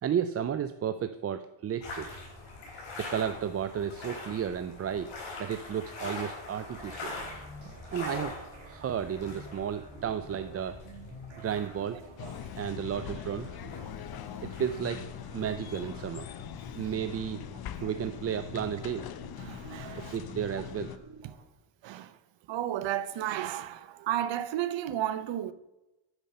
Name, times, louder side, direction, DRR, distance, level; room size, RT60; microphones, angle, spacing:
voice 1, 0.0-2.2 3.0-5.1 5.4-7.1 7.9-8.3 8.6-10.8 11.4-12.0 12.6-13.5 14.4-15.0 15.3-16.3 16.7-17.4 17.8-19.0 20.1-20.9, right 8 dB, 35° right, 0.4 m, -33 dB
sound 1, 1.8-16.4, left 3 dB, 75° left, 4.0 m, -44 dB
sound 2, 6.7-21.5, right 2 dB, 85° right, 1.9 m, -50 dB
sound 3, 12.2-21.0, left 10 dB, 55° left, 0.6 m, -42 dB
voice 2, 19.4-20.2 21.8-22.1 22.5-25.5, right 12 dB, 70° right, 0.8 m, -33 dB
9.1 x 5.3 x 6.5 m
cardioid pair, 90°, 46 cm